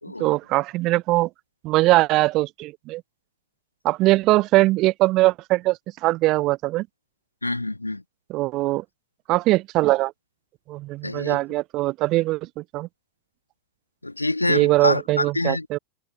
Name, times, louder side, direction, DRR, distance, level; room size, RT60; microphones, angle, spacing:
voice 1, 0.2-1.3 1.6-3.0 3.8-6.9 8.3-8.8 9.3-10.1 10.7-12.9 14.5-15.8, right 19 dB, 40° right, 0.3 m, -21 dB
voice 2, 7.4-8.0 11.0-11.4 14.0-15.8, left 2 dB, 85° left, 1.8 m, -26 dB
figure-of-eight pair, 90°, 0 cm